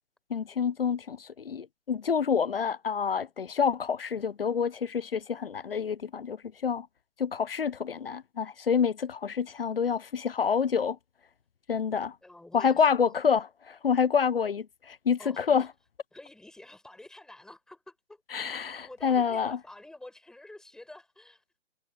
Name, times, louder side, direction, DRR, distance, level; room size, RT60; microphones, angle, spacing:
voice 1, 0.3-6.4 6.6-6.9 7.2-11.0 11.7-12.1 12.5-15.7 18.3-19.6, left 6 dB, 55° left, 0.7 m, -27 dB
voice 2, 12.2-13.0 15.2-15.7 16.1-18.2 18.8-21.4, left 1 dB, ahead, 5.3 m, -49 dB
figure-of-eight pair, 145°, 36 cm